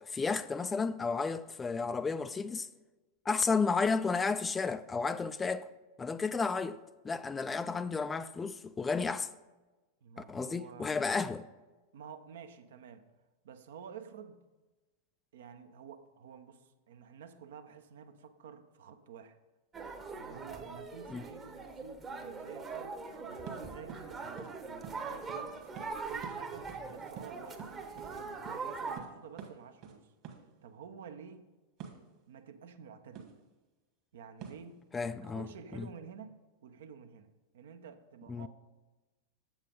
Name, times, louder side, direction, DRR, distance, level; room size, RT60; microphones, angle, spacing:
voice 1, 0.0-2.7 3.3-5.7 6.0-6.8 7.0-9.3 10.3-11.5 21.1-21.3 34.9-35.5 35.7-35.9 38.3-38.5, left 4 dB, 15° left, 0.3 m, -32 dB
voice 2, 10.0-11.2 11.9-13.0 13.4-14.4 15.3-19.4 20.2-23.0 23.3-25.7 26.0-30.1 30.6-31.5 32.3-33.3 34.1-36.4 36.6-37.3 37.5-38.5, right 7 dB, 60° right, 0.7 m, -50 dB
sound 1, 19.7-29.0, right 4 dB, 20° right, 0.9 m, -42 dB
sound 2, 23.5-23.6 23.9-24.1 24.4-24.5 24.8-25.0 25.3-25.4 25.8-25.9 26.2-26.4 26.7-26.9 27.2-28.1 28.5-28.6 29.0-29.1 29.4-29.5 29.8-30.0 30.2-30.4 31.8-32.0 33.2-33.4 34.4-34.7, right 7 dB, 40° right, 1.5 m, -46 dB
7.4 x 7.2 x 5.2 m
figure-of-eight pair, 90°, 0 cm